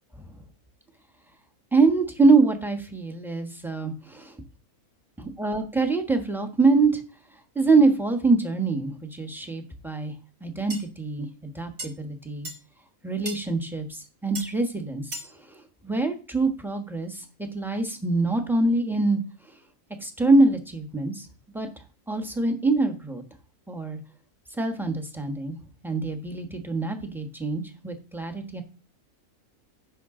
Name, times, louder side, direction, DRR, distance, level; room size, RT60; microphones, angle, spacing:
voice 1, 1.7-4.4 5.2-7.0 7.5-10.1 10.4-12.5 13.0-15.0 15.5-19.2 20.0-21.3 21.5-21.7 22.1-23.2 23.7-24.0 24.6-25.6 25.8-28.6, right 3 dB, ahead, 5 dB, 1.2 m, -24 dB
sound 1, 10.7-10.8 11.8-11.9 12.4-12.6 13.3-13.4 14.4-14.5 15.1-15.3, right 2 dB, 40° right, 2.2 m, -35 dB
11.0 x 7.0 x 3.8 m, 0.34 s
omnidirectional pair, 1.5 m